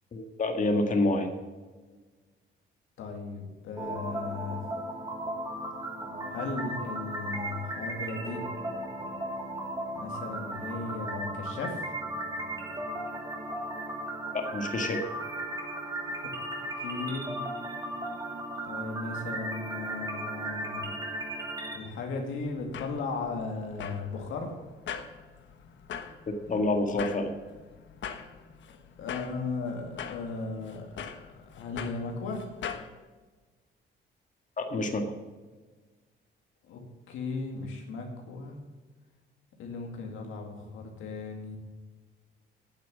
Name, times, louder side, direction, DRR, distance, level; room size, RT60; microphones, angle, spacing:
voice 1, 0.1-1.3 14.3-15.0 26.5-27.3 34.6-35.0, left 2 dB, 40° left, 4 dB, 1.8 m, -27 dB
voice 2, 3.0-4.6 6.3-8.4 10.0-11.9 16.2-16.3 16.8-17.3 18.6-20.9 21.7-24.5 29.0-30.9 31.4-32.4 36.6-36.8 37.1-38.6 39.6-41.6, left 3 dB, 85° left, 2 dB, 2.3 m, -36 dB
sound 1, 3.8-21.8, right 1 dB, 20° right, 2.7 m, -36 dB
sound 2, 22.4-32.9, left 7 dB, 70° left, 1.2 m, -42 dB
9.6 x 7.4 x 7.4 m, 1.3 s
cardioid pair, 90°, 20 cm